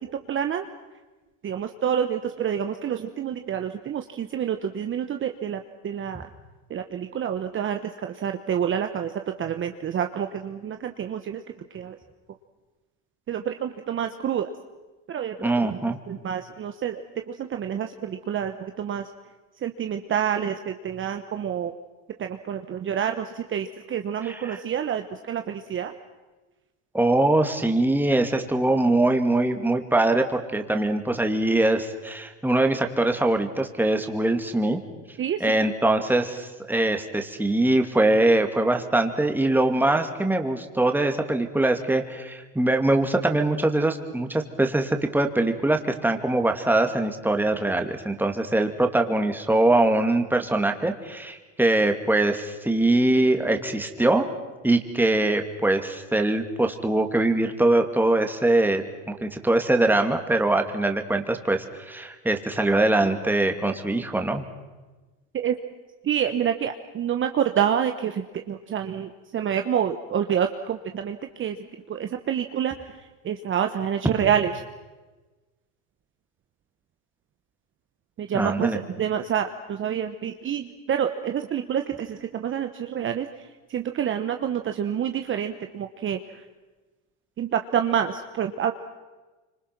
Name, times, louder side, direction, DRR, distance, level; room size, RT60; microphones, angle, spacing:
voice 1, 0.3-0.7 1.4-6.3 6.7-9.1 9.4-11.4 11.7-12.0 13.3-14.5 15.1-17.0 17.3-19.1 19.6-21.7 22.2-25.9 35.2-35.7 65.3-65.6 66.0-71.6 71.9-74.5 78.2-83.4 83.7-86.4 87.4-88.7, right 9 dB, 30° right, 6 dB, 1.2 m, -28 dB
voice 2, 15.4-16.0 24.2-24.6 26.9-34.8 35.4-54.3 54.6-64.5 78.3-78.8, right 2 dB, 5° right, 5 dB, 2.4 m, -22 dB
26.0 x 25.5 x 6.1 m, 1.2 s
supercardioid pair, 105°, 37 cm